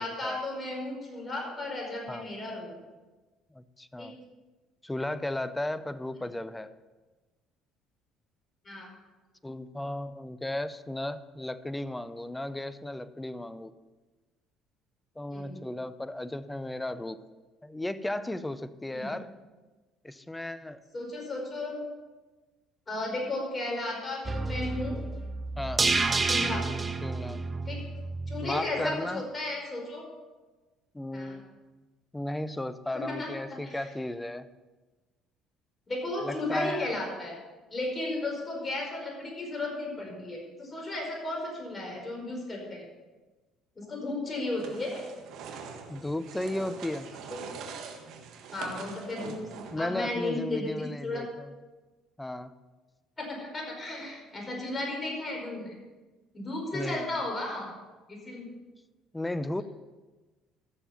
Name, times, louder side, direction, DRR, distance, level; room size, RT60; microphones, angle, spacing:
voice 1, 0.0-2.7 4.0-4.1 8.6-8.9 15.3-15.6 18.9-19.1 20.9-21.8 22.9-25.0 26.2-26.6 27.7-27.8 28.3-30.1 31.1-31.4 32.9-33.8 35.9-37.3 37.7-42.8 43.8-45.1 47.3-47.4 48.5-49.5 49.7-51.3 53.2-55.7 56.3-57.7 58.2-58.5, left 2 dB, 30° left, 0 dB, 4.7 m, -34 dB
voice 2, 3.5-4.1 4.8-6.7 9.4-13.7 15.2-17.2 17.6-19.3 20.0-20.8 25.6-25.9 27.0-27.4 28.4-29.2 30.9-31.7 32.1-34.5 36.2-36.9 45.9-47.1 49.2-49.3 49.7-51.5 52.2-52.5 56.7-57.1 59.1-59.6, left 1 dB, 10° left, 14 dB, 0.7 m, -35 dB
sound 1, 24.3-28.5 28.8-28.9, right 3 dB, 25° right, 0.9 m, -29 dB
sound 2, 44.6-50.0, right 6 dB, 70° right, 1.5 m, -43 dB
14.5 x 6.9 x 5.8 m, 1.2 s
supercardioid pair, 70°, 0 cm